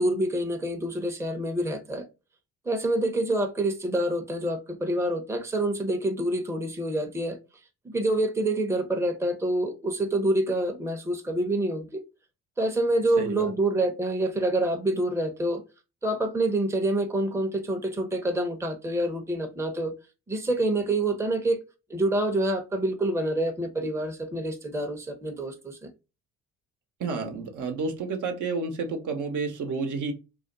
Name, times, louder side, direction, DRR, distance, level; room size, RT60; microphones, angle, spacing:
voice 1, 0.0-2.0 2.6-7.4 7.8-12.0 12.6-15.6 16.0-19.9 20.3-21.6 21.9-25.9, right 1 dB, 10° right, 0.7 m, -27 dB
voice 2, 13.2-13.5 27.0-30.1, right 4 dB, 60° right, 0.8 m, -30 dB
2.4 x 2.1 x 3.7 m
supercardioid pair, 60°, 34 cm